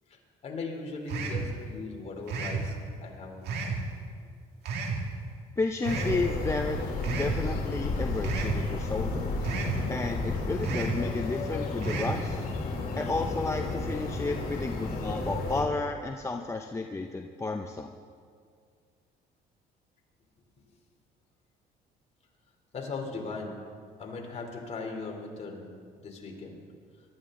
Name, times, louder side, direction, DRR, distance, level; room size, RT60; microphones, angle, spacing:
voice 1, 0.1-3.8 22.7-23.5 24.0-25.6 26.0-26.6, left 3 dB, 40° left, 1 dB, 3.2 m, -39 dB
sound 1, 1.1-1.5 2.3-2.7 3.5-3.8 4.7-5.0 5.8-6.2 7.0-7.4 8.2-8.6 9.4-9.8 10.6-11.0 11.8-12.2, right 4 dB, 75° right, 2.0 m, -31 dB
voice 2, 5.6-6.8 7.0-9.3 9.9-12.4 12.9-17.9, left 3 dB, 15° left, 4 dB, 0.7 m, -32 dB
sound 2, 5.8-15.6, left 3 dB, 60° left, 3.5 m, -32 dB
23.0 x 13.0 x 3.8 m, 2.1 s
cardioid pair, 110°, 17 cm